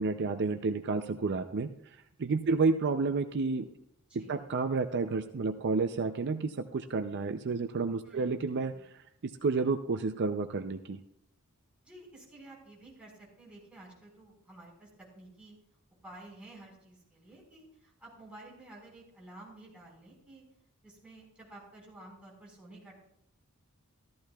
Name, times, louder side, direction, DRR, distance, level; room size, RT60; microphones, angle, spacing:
voice 1, 0.0-3.7 4.1-11.0, right 4 dB, 50° right, 8 dB, 0.5 m, -31 dB
voice 2, 8.0-8.8 11.8-15.6 16.0-20.4 20.8-23.0, right 2 dB, 5° right, -4 dB, 4.7 m, -52 dB
14.0 x 14.0 x 2.3 m, 0.80 s
head